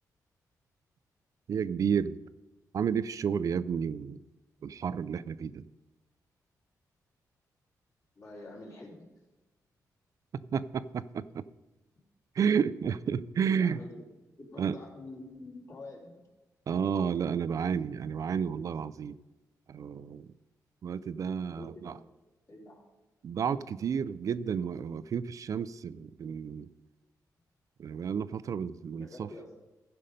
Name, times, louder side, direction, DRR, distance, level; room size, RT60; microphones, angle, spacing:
voice 1, 1.5-2.2 2.7-4.2 4.6-5.7 10.3-11.4 12.3-13.8 14.6-14.8 16.7-19.2 19.7-20.3 20.8-22.0 23.2-26.7 27.8-29.3, right 7 dB, 55° right, 15 dB, 0.3 m, -31 dB
voice 2, 8.1-9.1 13.4-14.0 14.4-16.2 21.2-22.0 22.5-22.8 29.0-29.6, left 2 dB, 45° left, -3 dB, 3.4 m, -47 dB
14.5 x 5.4 x 5.2 m, 1.1 s
cardioid pair, 100°, 7 cm